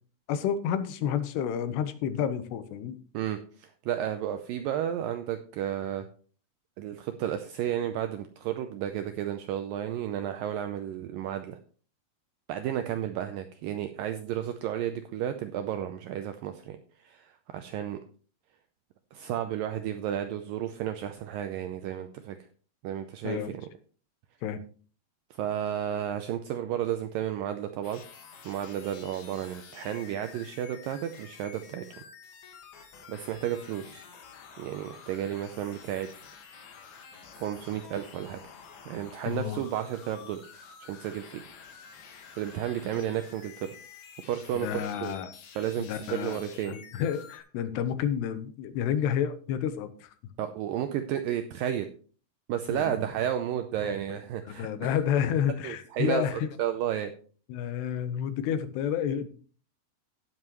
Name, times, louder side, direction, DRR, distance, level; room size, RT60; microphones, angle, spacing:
voice 1, 0.3-3.0 23.2-23.5 24.4-24.6 39.3-39.6 42.9-43.1 44.5-45.3 45.8-50.1 52.7-53.0 53.8-54.2 54.5-56.5 57.5-59.3, left 9 dB, 85° left, 11 dB, 3.0 m, -30 dB
voice 2, 3.1-6.1 6.8-11.6 12.5-18.0 19.1-22.4 22.8-23.6 25.4-28.0 28.4-32.0 33.1-34.1 34.6-36.1 37.3-38.4 38.9-40.5 40.8-41.4 42.4-43.7 44.3-44.7 45.0-45.1 45.6-46.8 50.4-51.9 52.5-54.9 55.6-56.2 56.6-57.1, right 10 dB, 85° right, 8 dB, 2.0 m, -32 dB
sound 1, 27.8-47.4, left 6 dB, 70° left, 3.5 m, -50 dB
17.5 x 7.6 x 3.0 m, 0.41 s
omnidirectional pair, 4.7 m